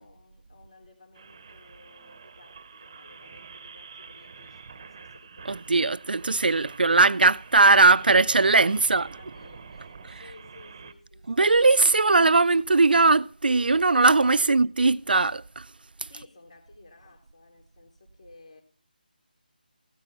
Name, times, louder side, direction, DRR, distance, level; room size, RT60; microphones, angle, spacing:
voice 1, 0.0-5.9 8.6-11.6 11.9-12.1 14.3-14.5 16.1-18.6, left 2 dB, 40° left, 3.6 m, -54 dB
sound 1, 1.1-10.9, right 5 dB, 25° right, 0.9 m, -47 dB
voice 2, 5.5-9.1 11.3-15.7, right 3 dB, 75° right, 0.5 m, -20 dB
16.0 x 10.5 x 5.5 m
figure-of-eight pair, 175°, 5 cm